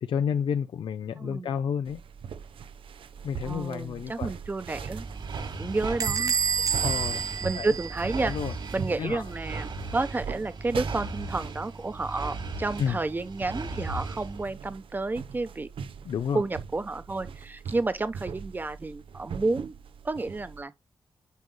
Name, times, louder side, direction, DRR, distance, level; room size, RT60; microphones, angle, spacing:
voice 1, 0.0-2.0 3.2-4.3 6.8-7.3 7.6-7.7 8.2-8.5 9.0-9.2 12.8-13.0 16.1-16.4, left 7 dB, 70° left, 0.5 m, -30 dB
voice 2, 1.2-1.5 3.4-5.1 5.6-6.7 7.4-8.3 8.7-15.7 16.3-19.7 20.0-20.7, right 3 dB, 20° right, 0.9 m, -31 dB
sound 1, 1.9-20.6, right 6 dB, 90° right, 0.8 m, -41 dB
sound 2, 4.7-14.4, right 3 dB, 65° right, 2.7 m, -37 dB
Bell / Squeak, 6.0-8.5, right 6 dB, 40° right, 0.4 m, -29 dB
9.3 x 5.3 x 2.3 m
wide cardioid pair, 150°, 9 cm